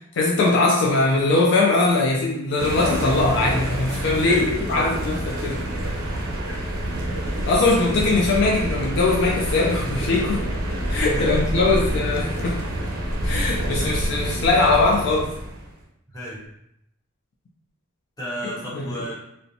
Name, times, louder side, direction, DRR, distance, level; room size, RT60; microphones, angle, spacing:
voice 1, 0.1-5.6 7.4-10.5 10.9-12.6 13.2-15.3 18.7-19.0, left 3 dB, 60° left, -2 dB, 0.3 m, -21 dB
sound 1, 2.6-15.7, right 1 dB, 80° right, 0.6 m, -27 dB
voice 2, 4.2-5.0 6.4-6.6 11.1-12.0 16.1-16.5 18.2-19.2, equal, 20° left, -8 dB, 0.9 m, -33 dB
2.5 x 2.0 x 2.7 m, 0.77 s
head